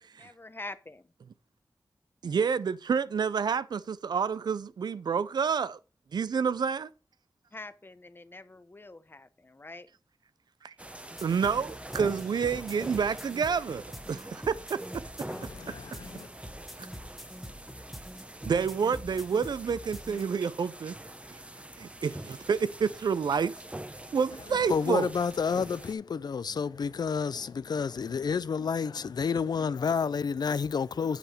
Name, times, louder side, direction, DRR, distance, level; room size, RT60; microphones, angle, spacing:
voice 1, 0.2-1.0 7.5-9.9, left 2 dB, 30° left, 0.8 m, -45 dB
voice 2, 2.2-5.8 6.1-6.9 10.6-10.7 11.2-15.0 15.7-15.8 16.8-16.9 18.4-21.0 21.8-23.5 24.1-25.1, right 6 dB, 85° right, 0.4 m, -29 dB
sound 1, 10.8-25.9, right 1 dB, 15° right, 0.9 m, -45 dB
sound 2, 11.2-20.4, equal, ahead, 1.2 m, -45 dB
voice 3, 15.3-16.3 24.6-31.2, left 6 dB, 80° left, 0.4 m, -30 dB
9.0 x 4.9 x 4.8 m
cardioid pair, 60°, 7 cm